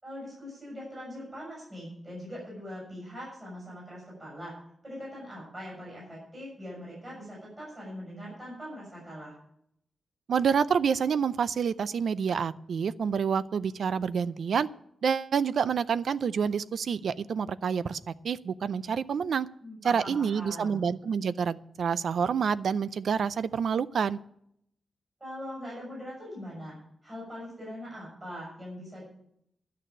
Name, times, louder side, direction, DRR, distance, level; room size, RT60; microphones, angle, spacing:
voice 1, 0.0-4.6 4.8-9.4 19.6-20.9 25.2-26.7 27.0-29.0, equal, 20° right, -4 dB, 6.7 m, -42 dB
voice 2, 10.3-14.7 15.0-19.5 19.8-24.2, right 6 dB, 70° right, 16 dB, 0.4 m, -28 dB
12.0 x 6.7 x 8.8 m, 0.72 s
wide cardioid pair, 155°, 0 cm